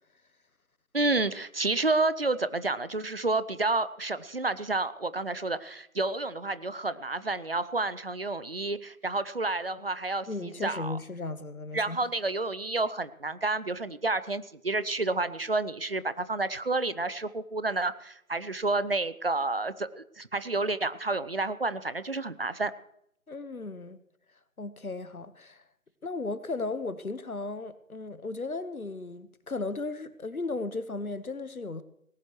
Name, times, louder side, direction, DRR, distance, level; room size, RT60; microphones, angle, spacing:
voice 1, 0.9-11.0 11.7-22.7, right 2 dB, 45° right, 0.7 m, -30 dB
voice 2, 10.3-12.0 23.3-24.0 24.6-25.6 26.0-31.8, left 3 dB, 90° left, 1.3 m, -35 dB
18.5 x 17.5 x 3.1 m
figure-of-eight pair, 160°, 41 cm